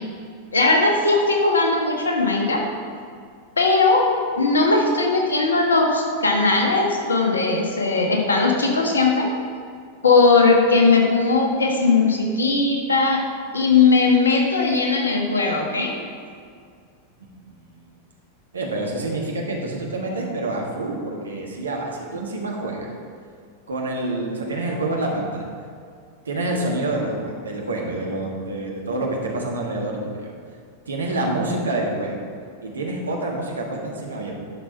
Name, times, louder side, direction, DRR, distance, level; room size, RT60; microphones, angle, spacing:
voice 1, 0.5-2.6 3.6-4.1 4.4-9.3 10.0-13.2 13.5-15.9, left 3 dB, 75° left, 1 dB, 1.4 m, -18 dB
voice 2, 18.5-22.9 23.7-25.5 26.2-30.3 30.9-32.1 32.6-34.4, right 2 dB, 75° right, 0 dB, 1.6 m, -27 dB
10.5 x 6.1 x 4.6 m, 2.2 s
figure-of-eight pair, 90°, 0 cm